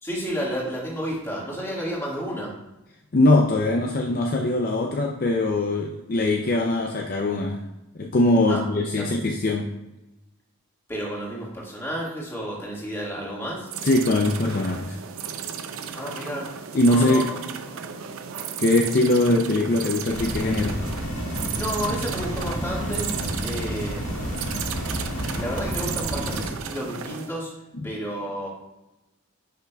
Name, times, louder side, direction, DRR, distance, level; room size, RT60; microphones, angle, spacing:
voice 1, 0.0-2.5 8.5-8.6 8.9-9.1 10.9-13.7 15.9-16.5 16.9-17.4 21.6-24.4 25.2-27.5 27.8-28.5, equal, 10° left, -4 dB, 1.7 m, -31 dB
voice 2, 3.1-7.6 7.9-9.7 13.8-15.0 16.7-17.3 18.6-20.8 27.8-27.9, left 2 dB, 40° left, 1 dB, 0.5 m, -22 dB
sound 1, 13.7-27.3, right 7 dB, 75° right, 0.5 m, -34 dB
sound 2, 20.1-26.5, equal, 85° left, 1.9 m, -30 dB
9.9 x 5.7 x 2.3 m, 0.99 s
head